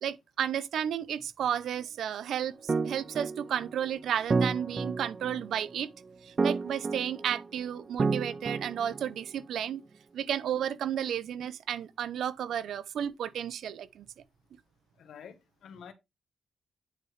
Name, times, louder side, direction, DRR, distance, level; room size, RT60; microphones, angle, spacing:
voice 1, 0.0-5.9 6.2-9.8 10.1-14.1, right 9 dB, 85° right, 0.6 m, -33 dB
sound 1, 2.7-9.4, right 4 dB, 40° right, 0.4 m, -31 dB
voice 2, 15.0-15.9, left 7 dB, 85° left, 1.2 m, -48 dB
9.6 x 4.8 x 3.2 m
cardioid pair, 85°, 0 cm